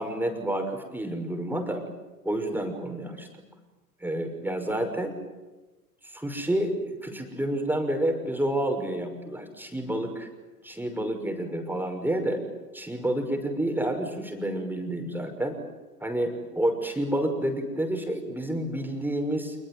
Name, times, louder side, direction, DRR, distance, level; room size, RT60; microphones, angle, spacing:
voice 1, 0.0-1.8 2.2-3.3 4.0-5.2 6.0-10.3 10.6-12.4 12.7-15.6 16.0-19.6, right 1 dB, 5° right, 5 dB, 6.0 m, -29 dB
28.0 x 21.5 x 9.5 m, 1.2 s
hypercardioid pair, 90°, 47 cm